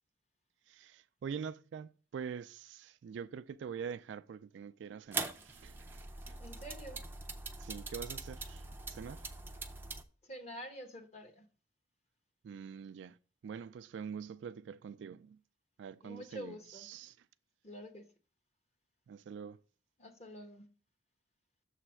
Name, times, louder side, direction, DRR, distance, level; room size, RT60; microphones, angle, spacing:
voice 1, 0.7-6.4 7.6-8.6 8.9-9.3 12.4-13.2 13.4-15.4 15.8-17.2 19.1-19.6, right 6 dB, 75° right, 0.3 m, -45 dB
sound 1, 5.1-10.0, right 3 dB, 10° right, 0.4 m, -42 dB
voice 2, 6.4-7.0 10.3-11.4 16.0-16.9 17.6-18.0 20.0-20.7, equal, 35° left, 0.9 m, -47 dB
7.0 x 3.3 x 6.0 m
head